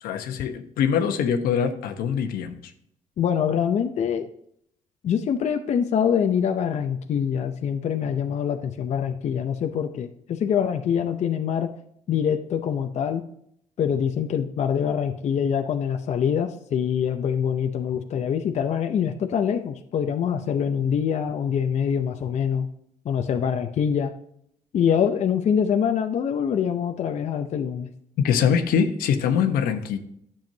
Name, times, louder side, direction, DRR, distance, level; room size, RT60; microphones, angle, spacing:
voice 1, 0.0-2.7 28.2-30.0, left 7 dB, 85° left, 7 dB, 1.1 m, -23 dB
voice 2, 3.2-4.3 5.0-11.7 12.1-13.2 13.8-22.7 23.0-24.1 24.7-27.9, left 8 dB, 50° left, 6 dB, 0.6 m, -24 dB
10.5 x 7.1 x 2.8 m, 0.70 s
cardioid pair, 125°, 15 cm